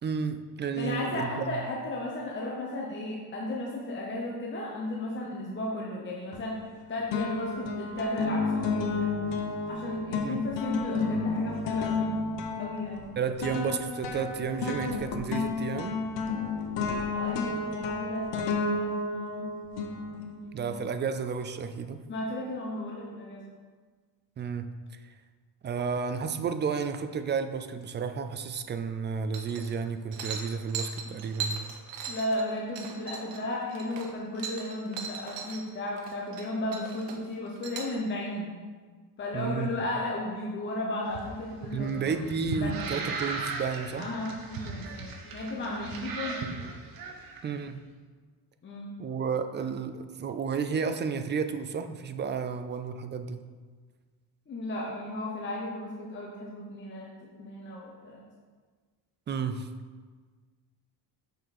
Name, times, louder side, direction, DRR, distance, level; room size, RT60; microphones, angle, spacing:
voice 1, 0.0-1.5 10.2-10.4 13.2-16.0 20.5-22.0 24.4-24.7 25.6-32.1 39.3-39.7 41.7-44.1 47.4-47.8 49.0-53.4 59.3-59.7, right 6 dB, 25° right, 9 dB, 0.3 m, -32 dB
voice 2, 0.7-6.6 6.9-9.3 9.7-12.2 12.6-13.2 17.0-19.5 20.3-20.6 22.1-23.5 31.0-31.1 32.1-38.5 39.2-43.1 43.9-46.6 48.6-48.9 54.5-58.2, left 1 dB, 25° left, -3 dB, 0.9 m, -35 dB
sound 1, 6.3-6.8 7.1-20.5, left 4 dB, 75° left, 1.0 m, -31 dB
sound 2, 29.3-29.8 30.1-35.6 35.9-36.5 36.7-37.9, right 6 dB, 75° right, 1.1 m, -38 dB
sound 3, 41.1-47.4, right 4 dB, 50° right, 1.1 m, -37 dB
6.6 x 6.4 x 4.2 m, 1.5 s
cardioid pair, 150°, 43 cm